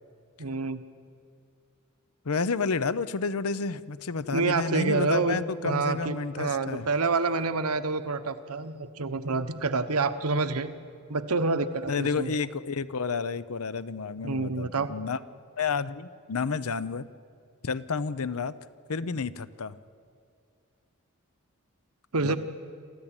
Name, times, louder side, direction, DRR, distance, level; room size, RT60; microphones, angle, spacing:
voice 1, 0.4-0.8 4.3-10.7 11.1-12.3 14.2-14.9 22.1-22.4, right 3 dB, 85° right, 10 dB, 1.1 m, -28 dB
voice 2, 2.2-6.9 11.9-15.2 15.6-17.1 17.6-18.5 18.9-19.7 22.2-22.4, left 4 dB, 75° left, 16 dB, 0.7 m, -30 dB
27.0 x 14.5 x 8.9 m, 2.5 s
head